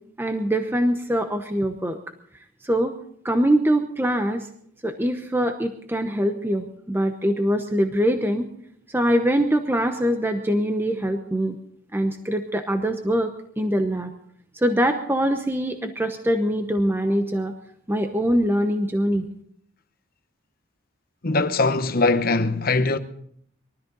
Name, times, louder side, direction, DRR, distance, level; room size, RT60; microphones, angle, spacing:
voice 1, 0.2-2.0 2.6-3.0 3.2-4.5 4.8-8.5 8.9-11.6 11.9-14.1 14.5-17.5 17.9-19.3, equal, 10° right, 0.9 m, -23 dB
voice 2, 21.2-23.0, left 3 dB, 45° left, 1.0 m, -21 dB
22.5 x 13.5 x 4.0 m
head